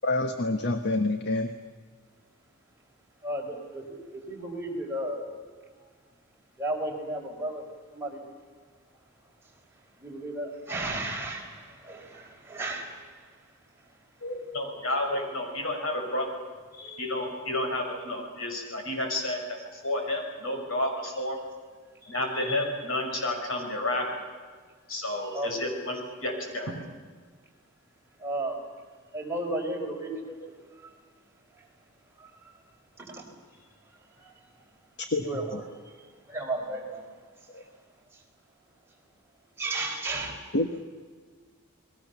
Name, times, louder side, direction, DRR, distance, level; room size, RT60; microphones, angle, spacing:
voice 1, 0.0-1.5 35.1-35.2 37.5-37.6 40.5-40.7, left 2 dB, 55° left, 7 dB, 1.4 m, -26 dB
voice 2, 3.2-5.3 6.6-7.6 7.9-8.2 10.0-13.4 16.7-17.0 22.0-22.6 25.3-25.5 28.2-28.6 29.1-30.4 30.8-30.9 31.6-31.7 32.2-32.6 33.0-33.6 34.2-34.3 35.2-37.2 38.1-38.2 39.6-40.4, right 1 dB, 10° right, -1 dB, 4.9 m, -35 dB
voice 3, 14.2-16.3 17.0-21.4 22.1-24.3 24.9-26.8, left 1 dB, 75° left, 3 dB, 6.5 m, -31 dB
29.5 x 21.5 x 7.1 m, 1.5 s
head